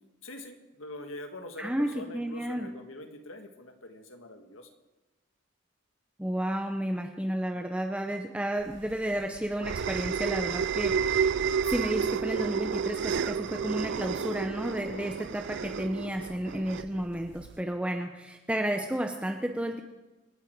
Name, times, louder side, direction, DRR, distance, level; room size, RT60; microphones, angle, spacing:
voice 1, 0.2-4.7, left 2 dB, 80° left, 6 dB, 1.8 m, -44 dB
voice 2, 1.6-2.7 6.2-11.3 11.7-19.8, right 1 dB, 5° right, 4 dB, 0.8 m, -32 dB
sound 1, 8.7-17.6, right 6 dB, 60° right, 0.4 m, -31 dB
27.0 x 9.1 x 4.6 m, 1.1 s
head